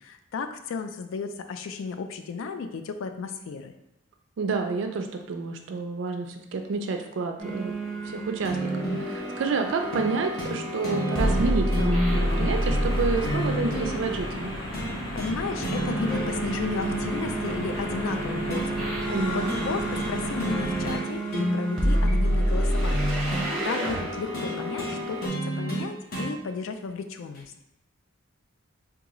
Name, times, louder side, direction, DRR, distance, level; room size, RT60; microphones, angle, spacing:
voice 1, 0.0-3.7 15.2-19.0 19.3-27.5, left 5 dB, 75° left, 7 dB, 0.3 m, -34 dB
voice 2, 4.4-7.7 8.0-14.6 19.1-19.6, right 4 dB, 65° right, 4 dB, 0.3 m, -29 dB
sound 1, 7.4-25.3, equal, ahead, 0.7 m, -29 dB
sound 2, 8.4-9.1 9.9-10.1 10.4-10.6 10.8-13.9 14.7-15.4 15.6-16.5 16.8-18.7 19.5-19.7 19.9-20.1 20.4-21.0 21.3-23.5 24.3-26.3 27.3-27.4, equal, 45° left, 0.8 m, -31 dB
sound 3, 12.0-21.0, equal, 20° left, 1.2 m, -35 dB
3.6 x 2.3 x 2.9 m, 0.92 s
head